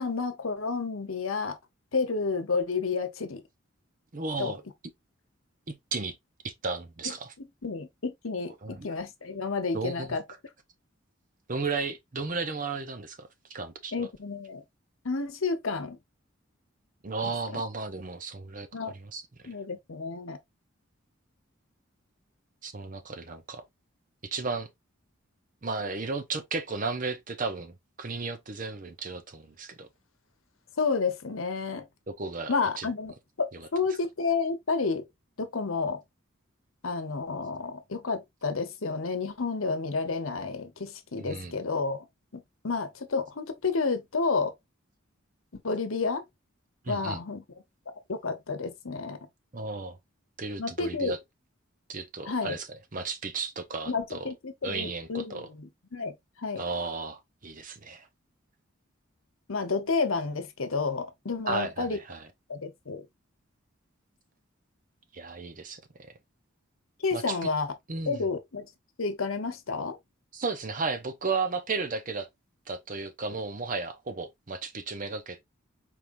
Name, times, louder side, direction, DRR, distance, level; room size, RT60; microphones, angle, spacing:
voice 1, 0.0-1.6 1.9-3.4 4.4-4.5 7.0-10.2 13.9-14.6 15.0-16.0 17.2-17.6 18.7-18.9 19.4-20.4 30.8-31.9 32.5-35.0 35.4-36.0 36.8-42.1 42.3-44.5 45.5-46.2 46.9-47.4 48.1-49.2 50.6-51.2 52.2-52.6 53.9-56.1 56.4-56.6 59.5-62.0 62.5-63.1 67.0-67.7 68.1-68.7 69.0-70.0, left 4 dB, 85° left, 0.9 m, -30 dB
voice 2, 4.1-4.6 5.7-6.1 6.4-7.3 8.6-8.9 9.7-10.2 11.5-14.1 17.0-19.2 22.6-23.6 24.2-24.7 25.6-29.9 32.1-32.9 33.5-33.7 41.2-41.6 46.8-47.2 49.5-50.0 50.4-51.2 51.9-52.7 52.9-54.3 54.6-55.5 56.6-58.1 61.5-62.3 65.1-65.8 67.1-67.5 67.9-68.2 70.3-72.3 72.7-75.4, right 4 dB, 40° right, 0.8 m, -34 dB
4.6 x 3.6 x 2.6 m
head